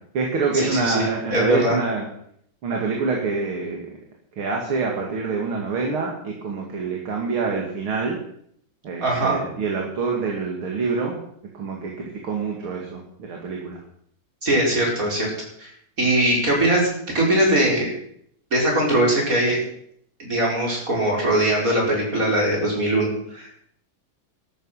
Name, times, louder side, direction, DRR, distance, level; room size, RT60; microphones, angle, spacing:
voice 1, 0.0-2.1 2.6-3.9 4.4-8.2 8.8-11.2 11.5-13.8, right 4 dB, 80° right, 0 dB, 3.1 m, -26 dB
voice 2, 0.6-1.8 9.0-9.4 14.4-15.3 15.6-15.7 16.0-16.9 17.1-17.9 18.5-19.6 20.2-23.5, right 1 dB, 40° right, -2 dB, 5.4 m, -21 dB
13.5 x 12.5 x 5.8 m, 0.68 s
omnidirectional pair, 2.3 m